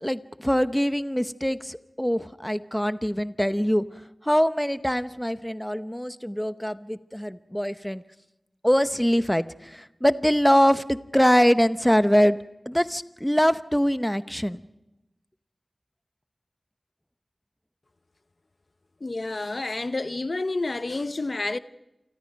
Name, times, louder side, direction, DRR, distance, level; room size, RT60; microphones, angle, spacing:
voice 1, 0.0-3.8 4.2-8.0 8.6-12.4 12.7-14.6, equal, 5° left, 0.8 m, -23 dB
voice 2, 19.0-21.6, left 2 dB, 55° left, 0.8 m, -29 dB
29.0 x 24.5 x 5.3 m
wide cardioid pair, 55°, 0 cm